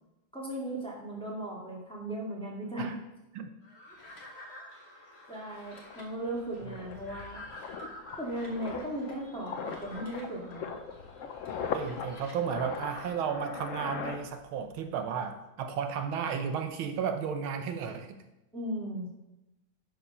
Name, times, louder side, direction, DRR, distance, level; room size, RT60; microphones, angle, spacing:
voice 1, 0.3-2.9 5.3-7.4 8.2-10.7 18.5-19.1, right 1 dB, 5° left, -4 dB, 2.0 m, -37 dB
sound 1, 3.6-13.1, left 1 dB, 35° left, 1.4 m, -50 dB
sound 2, 5.4-5.5 5.8-14.8 15.1-15.4, left 6 dB, 65° left, 0.7 m, -40 dB
voice 2, 11.7-18.2, right 7 dB, 80° right, 7 dB, 1.6 m, -33 dB
11.0 x 4.6 x 5.6 m, 0.94 s
omnidirectional pair, 2.2 m